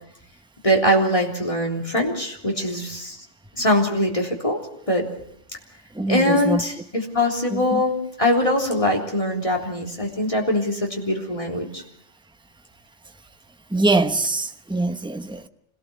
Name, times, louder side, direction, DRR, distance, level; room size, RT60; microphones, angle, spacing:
voice 1, 0.6-3.2 3.5-4.6 4.9-5.1 6.1-11.8, left 1 dB, 25° left, 3.8 m, -22 dB
voice 2, 5.9-6.6 7.5-7.8 13.7-15.5, right 2 dB, 5° right, 0.9 m, -23 dB
25.5 x 18.0 x 7.0 m
omnidirectional pair, 1.2 m